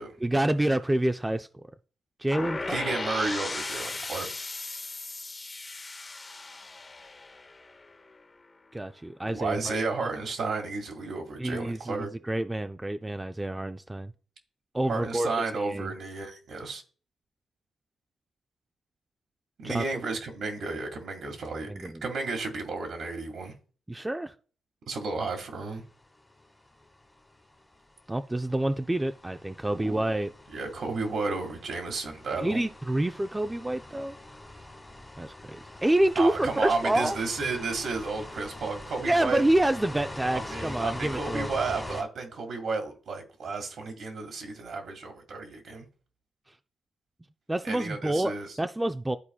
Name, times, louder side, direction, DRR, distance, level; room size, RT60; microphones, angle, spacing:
voice 1, 0.2-1.5 2.2-2.8 8.7-10.1 11.4-14.1 14.7-15.3 15.5-15.9 19.6-19.8 21.7-22.0 23.9-24.3 28.1-30.3 32.4-34.2 35.2-37.2 39.0-41.5 47.5-49.2, right 1 dB, 15° right, 0.3 m, -28 dB
sound 1, 2.3-8.2, left 3 dB, 30° left, 0.8 m, -37 dB
voice 2, 2.7-4.3 9.2-12.1 14.9-16.8 19.6-23.5 24.9-25.8 29.8-30.0 30.5-32.6 36.2-39.4 40.3-45.8 47.6-48.5, right 3 dB, 65° right, 1.8 m, -32 dB
sound 2, 25.9-42.0, left 1 dB, 10° left, 1.3 m, -43 dB
12.0 x 4.2 x 2.3 m
cardioid pair, 90°, 0 cm